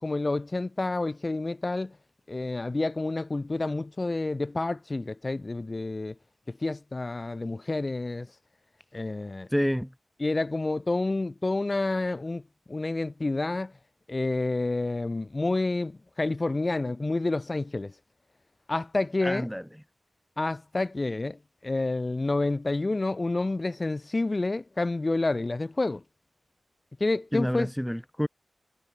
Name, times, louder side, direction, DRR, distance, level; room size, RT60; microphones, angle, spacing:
voice 1, 0.0-2.0 2.3-6.1 6.5-8.3 8.9-9.5 10.2-12.4 12.7-13.7 14.1-17.9 18.7-19.5 20.4-26.0 27.0-27.7, left 2 dB, 40° left, 3.8 m, -29 dB
voice 2, 9.5-9.9 19.2-19.6 27.3-28.3, equal, ahead, 5.5 m, -28 dB
cardioid pair, 45°, 0 cm